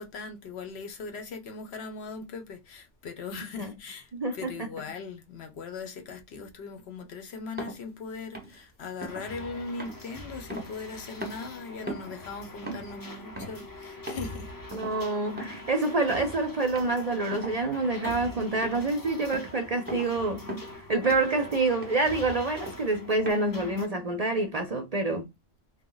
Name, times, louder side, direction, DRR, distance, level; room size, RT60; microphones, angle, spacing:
voice 1, 0.0-14.5, left 4 dB, 70° left, 1.0 m, -39 dB
voice 2, 4.1-4.7 14.7-20.5 20.9-25.3, right 2 dB, 45° right, 0.5 m, -27 dB
sound 1, 7.6-7.8 8.3-8.6 9.0-9.3 9.8-11.0 11.2-11.5 11.9-12.2 12.7-13.0 13.4-13.6 14.1-14.4 14.7-15.0 15.4-15.7 16.0-16.3 16.8-17.0 17.3-17.6 18.0-18.3 18.6-18.9 19.3-19.6 19.9-20.2 20.5-20.8 21.1-21.4 21.8-22.1 22.6-22.9 23.3-23.4, right 1 dB, 10° right, 0.7 m, -39 dB
sound 2, 9.1-23.9, left 1 dB, 25° left, 0.5 m, -44 dB
3.1 x 2.1 x 3.8 m
omnidirectional pair, 1.2 m